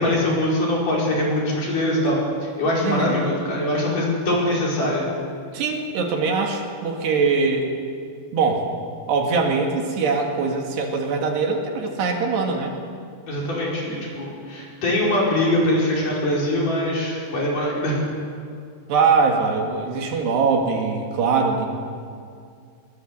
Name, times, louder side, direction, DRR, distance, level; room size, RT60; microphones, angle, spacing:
voice 1, 0.0-5.0 13.3-18.0, left 1 dB, 50° left, -4 dB, 6.5 m, -22 dB
voice 2, 2.8-3.3 5.5-7.7 8.3-8.7 9.1-12.7 18.9-21.7, right 4 dB, 75° right, 1 dB, 4.3 m, -22 dB
22.0 x 21.5 x 8.0 m, 2.3 s
omnidirectional pair, 5.0 m